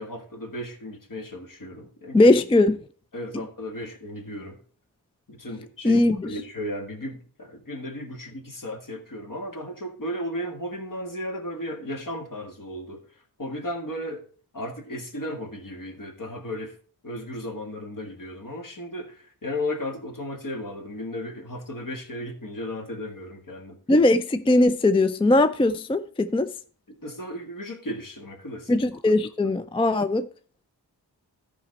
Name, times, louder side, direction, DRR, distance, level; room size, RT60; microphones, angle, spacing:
voice 1, 0.0-2.3 3.1-4.6 5.3-13.0 13.4-14.2 14.5-16.7 17.0-23.8 27.0-28.8, left 1 dB, 50° left, 1.7 m, -35 dB
voice 2, 2.1-2.8 5.8-6.4 23.9-26.5 28.7-30.3, left 2 dB, 15° left, 0.4 m, -20 dB
12.5 x 5.1 x 4.0 m
cardioid pair, 60°, 40 cm